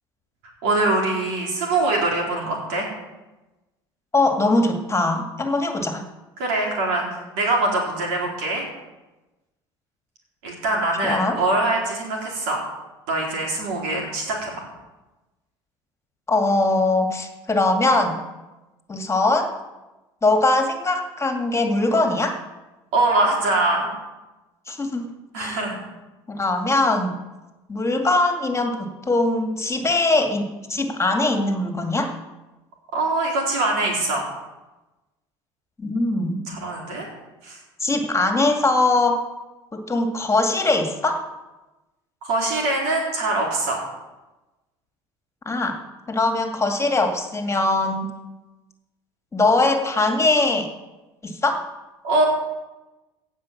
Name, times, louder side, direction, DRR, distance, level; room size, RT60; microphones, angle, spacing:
voice 1, 0.6-2.9 6.4-7.1 7.3-8.6 10.4-12.6 13.1-14.7 22.9-23.9 25.3-25.8 32.9-34.3 36.5-37.1 37.4-37.6 42.2-43.8 52.0-52.3, right 2 dB, 75° right, -1 dB, 4.0 m, -23 dB
voice 2, 4.1-6.0 11.0-11.4 16.3-18.2 18.9-19.5 20.2-22.4 24.7-25.1 25.4-25.6 26.3-27.2 27.7-32.1 35.8-36.4 37.8-39.2 39.7-41.3 45.5-45.8 46.1-48.1 49.3-50.7 51.2-51.7, left 2 dB, 20° left, 4 dB, 2.1 m, -21 dB
16.5 x 5.6 x 7.3 m, 1.1 s
hypercardioid pair, 70°, 14 cm